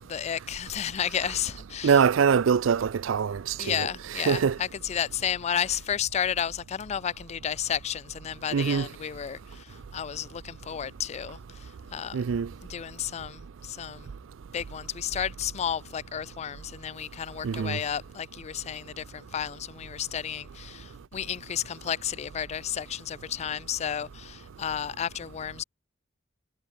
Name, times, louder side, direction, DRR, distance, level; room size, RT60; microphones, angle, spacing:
voice 1, 0.1-2.0 3.6-12.3 12.6-14.1 14.5-25.6, left 9 dB, 35° left, 0.3 m, -32 dB
voice 2, 1.8-3.9 4.1-4.6 8.5-8.9 12.1-12.5 17.4-17.8, right 6 dB, 70° right, 0.4 m, -23 dB
head